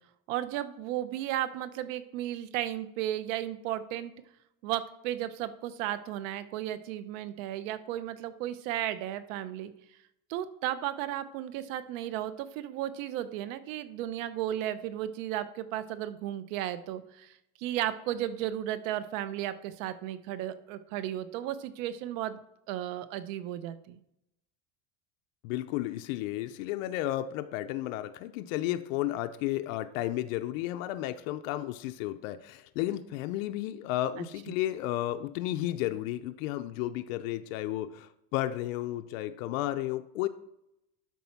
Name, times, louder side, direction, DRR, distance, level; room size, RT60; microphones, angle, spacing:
voice 1, 0.3-4.1 4.6-9.7 10.3-17.3 17.6-22.4 22.7-24.0 34.2-34.3, right 12 dB, 80° right, 13 dB, 0.9 m, -34 dB
voice 2, 25.4-40.3, left 14 dB, 85° left, 9 dB, 0.7 m, -33 dB
12.0 x 4.2 x 5.9 m, 0.82 s
cardioid pair, 150°, 39 cm